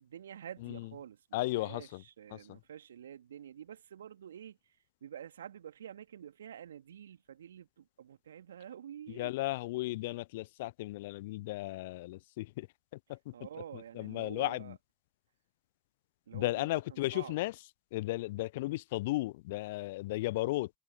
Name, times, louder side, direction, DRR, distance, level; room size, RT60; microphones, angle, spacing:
voice 1, 0.0-4.8 5.0-9.3 13.3-14.8 16.3-17.3 18.3-18.4, right 9 dB, 80° right, 2.6 m, -48 dB
voice 2, 0.6-0.9 1.3-2.0 2.3-2.6 9.1-12.7 12.9-13.3 13.7-14.8 16.3-17.5 17.9-20.8, left 19 dB, 75° left, 0.5 m, -35 dB
figure-of-eight pair, 40°, 0 cm